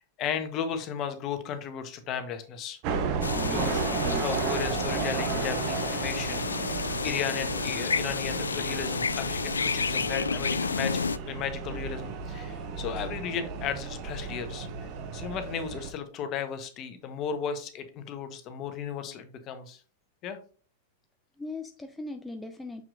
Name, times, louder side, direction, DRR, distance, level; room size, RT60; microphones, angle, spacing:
voice 1, 0.2-2.8 3.5-19.8 20.2-20.4, left 7 dB, 40° left, 8 dB, 1.2 m, -35 dB
sound 1, 2.8-15.9, right 5 dB, 45° right, 1.1 m, -33 dB
sound 2, 3.2-11.2, left 5 dB, 80° left, 0.3 m, -31 dB
voice 2, 3.3-4.4 21.4-22.8, left 2 dB, 10° left, 5 dB, 0.6 m, -39 dB
6.6 x 5.9 x 2.6 m, 0.39 s
figure-of-eight pair, 95°, 0 cm